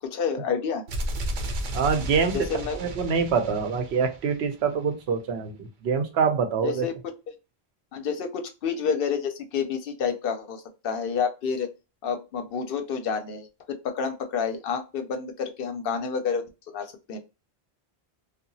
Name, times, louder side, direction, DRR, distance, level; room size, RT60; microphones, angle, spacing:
voice 1, 0.0-0.8 2.3-2.8 6.6-6.9 7.9-11.7 12.0-17.2, left 6 dB, 65° left, 7 dB, 0.8 m, -29 dB
sound 1, 0.9-4.7, right 1 dB, 55° right, 0.6 m, -33 dB
voice 2, 1.7-2.4 2.7-6.9, right 6 dB, 85° right, 7 dB, 0.9 m, -25 dB
2.8 x 2.3 x 2.6 m, 0.29 s
omnidirectional pair, 1.0 m